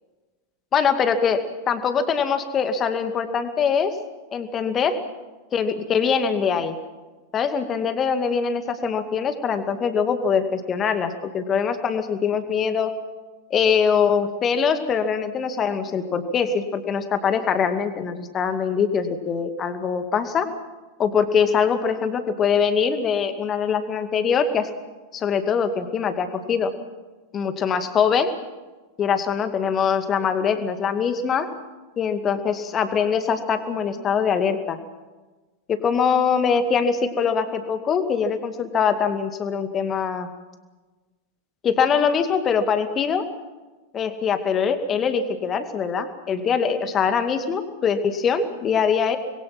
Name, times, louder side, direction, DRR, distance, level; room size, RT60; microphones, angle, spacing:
voice 1, 0.7-1.4 1.7-3.9 4.3-5.0 5.5-6.8 7.3-12.9 13.5-20.5 21.0-24.7 25.1-26.7 27.3-28.3 29.0-31.5 32.0-34.8 35.7-40.3 41.6-43.2 43.9-49.2, left 6 dB, 25° left, 8 dB, 2.3 m, -23 dB
26.5 x 22.0 x 6.0 m, 1.2 s
figure-of-eight pair, 90°, 0 cm